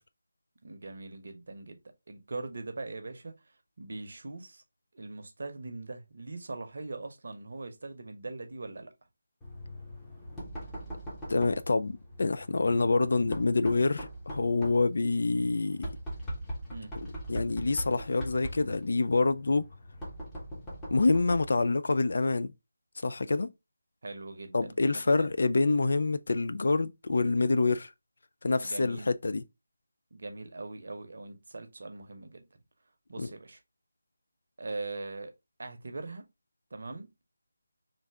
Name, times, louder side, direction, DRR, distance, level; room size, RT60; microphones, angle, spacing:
voice 1, 0.6-1.8 2.1-3.3 3.8-4.6 4.9-8.9 16.7-17.0 24.0-25.3 28.6-29.1 30.1-32.4 33.1-33.6 34.6-35.3 35.6-36.3 36.7-37.1, right 3 dB, 50° right, 0.8 m, -41 dB
Knock, 9.4-21.6, right 1 dB, 10° left, 1.0 m, -41 dB
voice 2, 11.3-15.8 17.0-19.6 20.9-22.5 23.0-23.5 24.5-27.9 28.4-29.4 33.2-33.3, left 3 dB, 55° left, 0.3 m, -27 dB
3.3 x 2.6 x 3.4 m
figure-of-eight pair, 160°, 0 cm